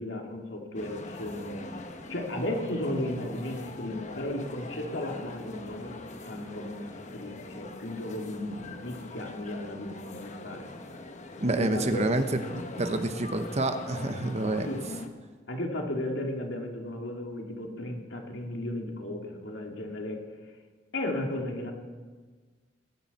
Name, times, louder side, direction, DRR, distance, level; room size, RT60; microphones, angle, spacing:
voice 1, 0.0-1.7 2.1-5.9 6.3-10.6 11.4-12.1 14.7-14.8 15.5-20.2 20.9-21.7, left 1 dB, 70° left, 1 dB, 2.3 m, -35 dB
sound 1, 0.7-15.1, left 2 dB, 40° left, 1.0 m, -43 dB
voice 2, 11.4-14.7, right 2 dB, 35° right, 8 dB, 0.9 m, -28 dB
20.5 x 10.5 x 4.2 m, 1.4 s
head